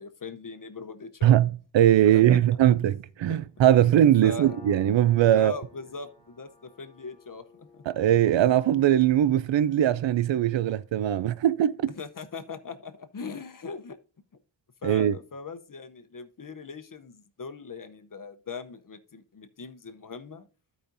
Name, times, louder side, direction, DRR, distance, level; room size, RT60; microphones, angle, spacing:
voice 1, 0.0-1.4 2.0-2.4 3.3-3.6 4.2-4.6 5.3-7.8 12.0-14.0 14.8-20.5, left 4 dB, 45° left, 0.8 m, -40 dB
voice 2, 1.2-5.5 7.9-11.9 14.8-15.2, right 11 dB, 80° right, 0.5 m, -21 dB
Piano, 4.4-11.6, left 5 dB, 15° left, 2.4 m, -52 dB
15.0 x 5.1 x 2.6 m
wide cardioid pair, 105°, 44 cm